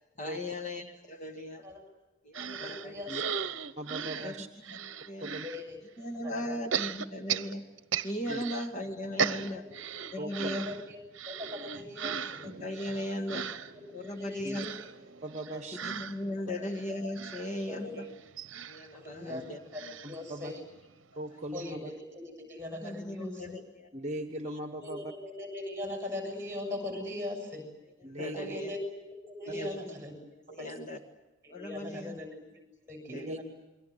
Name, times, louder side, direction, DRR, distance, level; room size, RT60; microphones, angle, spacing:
voice 1, 0.2-1.6 2.2-2.9 4.2-4.3 4.7-4.8 5.0-5.3 6.0-7.6 8.0-9.6 10.1-10.7 12.4-13.5 13.9-14.7 15.8-18.1 18.6-19.6 22.7-23.9 24.4-24.6 28.2-28.7 29.5-29.8 30.3-31.0 31.5-32.1 33.1-33.3, left 1 dB, 35° left, 5 dB, 1.8 m, -37 dB
voice 2, 2.3-3.4 4.2-4.3 5.4-5.8 6.2-6.7 9.5-9.8 10.1-12.4 13.3-13.6 13.9-14.8 15.5-15.6 16.3-16.8 17.7-18.2 18.9-20.6 21.5-23.6 24.8-27.7 28.3-30.2 30.6-30.7 31.4-33.4, left 2 dB, 10° right, 4 dB, 7.2 m, -41 dB
sound 1, 2.3-5.6 6.7-8.7 9.0-20.9 21.3-21.4 21.6-21.7, right 7 dB, 60° right, 0.9 m, -37 dB
voice 3, 3.8-4.5 5.2-5.4 8.3-8.4 10.2-10.5 14.4-14.6 15.2-15.8 19.3-19.4 20.0-20.5 21.2-21.9 23.9-25.1 28.0-28.6 29.5-29.7 30.6-30.7 33.1-33.4, right 1 dB, 35° right, 7 dB, 1.3 m, -39 dB
28.5 x 22.5 x 8.0 m, 1.0 s
head